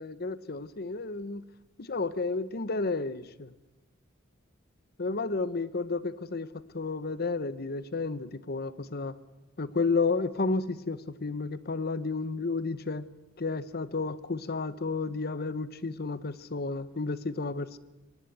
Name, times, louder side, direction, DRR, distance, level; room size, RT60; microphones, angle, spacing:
voice 1, 0.0-1.4 1.8-3.5 5.0-6.5 6.7-9.1 9.6-13.1 13.4-17.8, left 3 dB, 50° left, 0.9 m, -31 dB
23.5 x 18.0 x 8.5 m
head